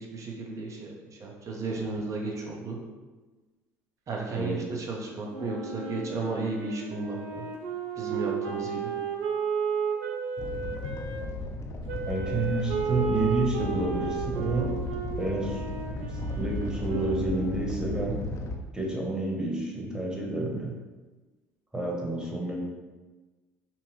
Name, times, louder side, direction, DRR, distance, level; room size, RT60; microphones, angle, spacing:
voice 1, 0.0-2.8 4.1-7.5 7.9-8.9, right 3 dB, 40° right, 0 dB, 0.9 m, -34 dB
Wind instrument woodwind instrument, 5.3-11.2 11.9-17.7, right 6 dB, 75° right, 0.6 m, -33 dB
Animal, 10.4-18.5, left 2 dB, 40° left, 0.6 m, -35 dB
voice 2, 11.9-14.7 15.2-15.6 16.1-18.2 18.7-20.7 21.7-22.6, right 2 dB, 10° right, -1 dB, 1.2 m, -29 dB
5.7 x 2.3 x 3.2 m, 1.3 s
hypercardioid pair, 65°, 8 cm